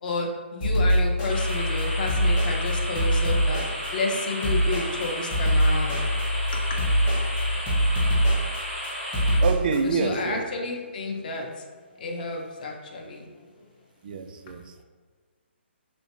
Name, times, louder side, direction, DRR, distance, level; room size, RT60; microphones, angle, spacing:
voice 1, 0.0-3.6 3.9-6.0 6.5-6.8 9.8-13.5, left 3 dB, 45° left, 1 dB, 0.6 m, -31 dB
sound 1, 0.6-9.8, equal, 20° left, 0.9 m, -23 dB
sound 2, 1.3-9.4, equal, 90° left, 1.5 m, -33 dB
voice 2, 9.1-10.4 14.0-14.8, right 5 dB, 45° right, 7 dB, 0.3 m, -27 dB
3.0 x 2.7 x 3.1 m, 1.5 s
hypercardioid pair, 150°, 6 cm